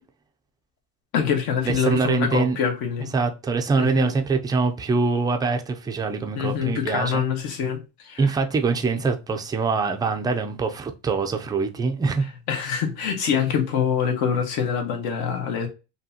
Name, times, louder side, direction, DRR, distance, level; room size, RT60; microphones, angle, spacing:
voice 1, 1.1-3.1 3.8-4.1 6.3-8.3 12.5-15.7, left 7 dB, 65° left, 1.5 m, -25 dB
voice 2, 1.6-2.6 3.1-7.2 8.2-12.2, right 4 dB, 10° right, 0.3 m, -24 dB
5.1 x 2.8 x 2.8 m
cardioid pair, 135°, 40 cm